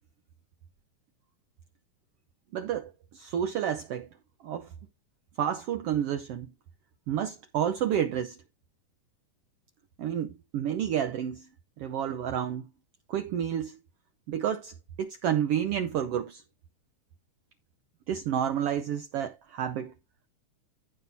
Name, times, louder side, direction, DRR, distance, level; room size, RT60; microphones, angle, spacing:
voice 1, 2.5-4.1 4.4-4.7 5.4-6.5 7.1-8.3 10.0-11.5 11.8-12.6 13.1-13.8 14.3-16.4 18.1-19.9, right 9 dB, 80° right, 1.3 m, -30 dB
15.5 x 5.7 x 2.6 m
omnidirectional pair, 3.7 m